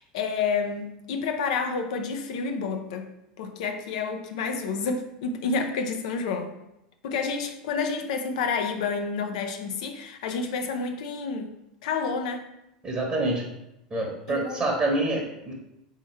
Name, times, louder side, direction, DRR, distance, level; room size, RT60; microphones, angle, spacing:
voice 1, 0.0-3.1 3.4-6.5 7.0-11.5 11.8-12.4 14.3-14.6, left 5 dB, 75° left, 0.5 m, -29 dB
voice 2, 12.8-13.5 13.9-15.5, right 2 dB, 25° right, 0.9 m, -27 dB
3.6 x 2.8 x 4.5 m
hypercardioid pair, 100°, 4 cm